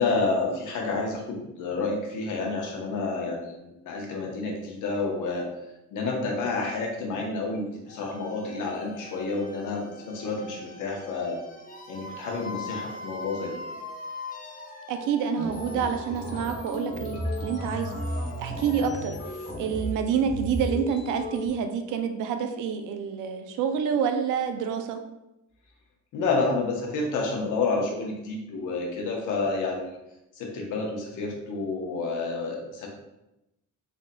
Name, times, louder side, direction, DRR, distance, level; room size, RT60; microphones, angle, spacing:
voice 1, 0.0-5.5 5.9-11.4 11.9-13.6 26.1-30.0 30.4-32.9, left 3 dB, 80° left, 0 dB, 1.0 m, -29 dB
sound 1, 7.9-20.7, left 2 dB, 25° left, 0.6 m, -42 dB
voice 2, 14.9-17.9 18.4-19.1 19.6-25.0, right 7 dB, 85° right, 7 dB, 0.5 m, -28 dB
sound 2, 15.4-21.5, equal, 55° left, 1.3 m, -34 dB
3.8 x 3.5 x 2.2 m, 0.90 s
cardioid pair, 90°, 30 cm